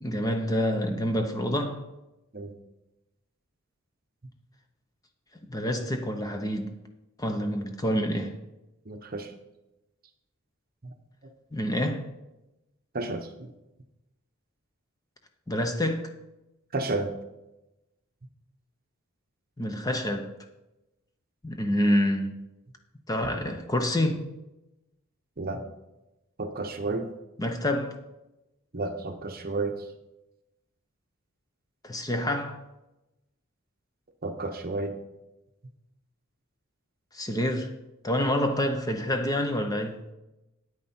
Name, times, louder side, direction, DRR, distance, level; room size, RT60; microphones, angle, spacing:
voice 1, 0.0-1.8 5.5-6.7 7.2-8.4 11.5-12.1 15.5-16.1 19.6-20.3 21.4-22.3 23.1-24.3 27.4-28.0 31.8-32.6 37.1-37.7 38.0-40.0, equal, 15° left, 0.7 m, -27 dB
voice 2, 8.9-9.3 10.8-10.9 12.9-13.5 16.7-17.1 25.4-25.6 26.4-27.1 28.7-29.8 34.2-35.0, right 3 dB, 40° right, 0.9 m, -32 dB
9.3 x 9.1 x 4.4 m
head